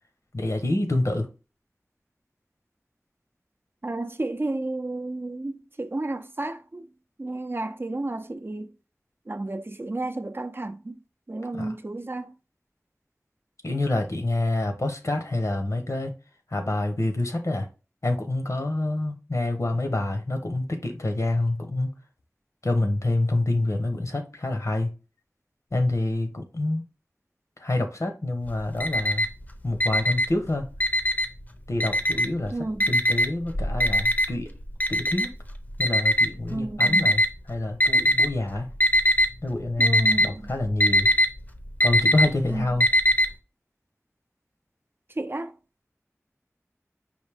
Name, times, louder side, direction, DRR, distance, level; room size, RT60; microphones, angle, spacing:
voice 1, 0.3-1.3 11.5-11.8 13.6-16.1 16.5-17.7 18.0-21.9 22.6-24.9 25.7-26.8 27.6-29.3 29.6-30.7 31.7-32.5 32.9-34.5 34.9-35.3 35.8-38.7 39.4-41.1 41.8-42.9, left 2 dB, 70° left, 0.9 m, -27 dB
voice 2, 3.8-6.9 7.2-8.7 9.3-11.0 11.3-12.3 32.5-32.9 36.5-37.1 39.8-40.5 42.5-42.7 45.2-45.5, right 2 dB, 45° right, 0.5 m, -32 dB
Alarm, 28.5-29.4 29.8-31.4 31.8-32.4 32.8-37.3 37.8-38.4 38.7-39.3 39.6-43.3, equal, 30° left, 0.6 m, -21 dB
5.0 x 2.7 x 3.4 m
wide cardioid pair, 50°, 5 cm